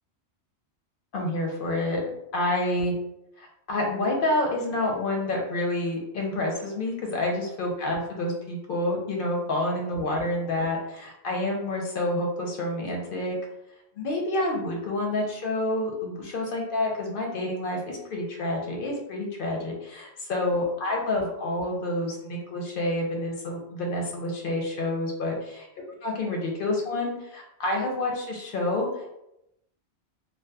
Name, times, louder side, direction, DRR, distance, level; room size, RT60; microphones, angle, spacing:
voice 1, 1.1-2.9 3.4-13.4 14.0-25.6 26.0-29.1, left 1 dB, 60° left, 0 dB, 0.6 m, -28 dB
2.7 x 2.1 x 2.2 m, 0.85 s
omnidirectional pair, 1.2 m